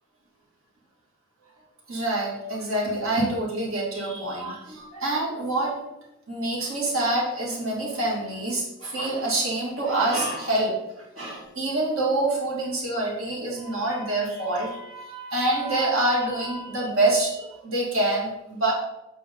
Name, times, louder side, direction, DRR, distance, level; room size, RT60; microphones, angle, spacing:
voice 1, 1.9-5.8 6.3-10.8 11.2-18.7, right 2 dB, 65° right, -4 dB, 2.8 m, -26 dB
8.3 x 5.9 x 3.9 m, 0.94 s
head